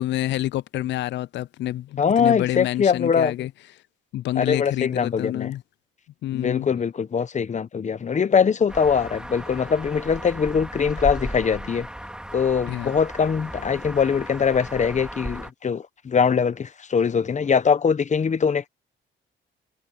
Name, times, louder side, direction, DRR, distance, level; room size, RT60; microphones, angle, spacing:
voice 1, 0.0-3.5 4.1-5.6 6.2-6.7 12.7-13.0, left 14 dB, 65° left, 0.4 m, -28 dB
voice 2, 2.0-3.5 4.4-5.5 6.3-11.9 12.3-18.7, left 6 dB, 35° left, 1.0 m, -22 dB
sound 1, 8.7-15.5, right 1 dB, 5° right, 3.0 m, -35 dB
cardioid pair, 90°, 20 cm